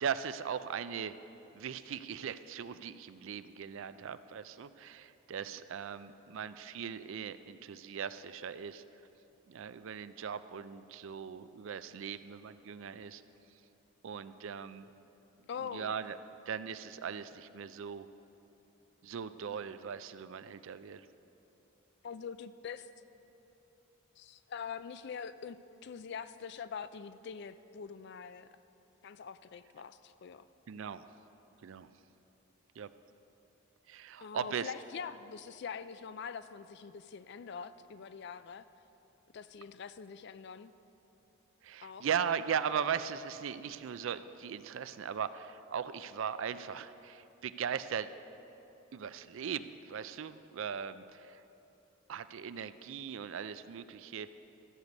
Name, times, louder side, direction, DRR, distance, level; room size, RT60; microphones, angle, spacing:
voice 1, 0.0-1.1 1.5-8.8 9.5-13.2 14.0-14.9 15.7-16.2 16.5-18.1 19.0-21.1 30.7-31.0 31.6-31.9 32.8-32.9 33.9-34.7 41.6-48.1 48.9-51.4 52.1-54.3, right 7 dB, 65° right, 13 dB, 0.4 m, -39 dB
voice 2, 15.5-15.9 22.0-22.9 24.2-25.6 25.8-28.5 29.0-30.5 34.2-38.6 39.3-40.7 41.8-42.1, left 6 dB, 50° left, 13 dB, 0.3 m, -44 dB
13.5 x 8.0 x 5.3 m, 3.0 s
head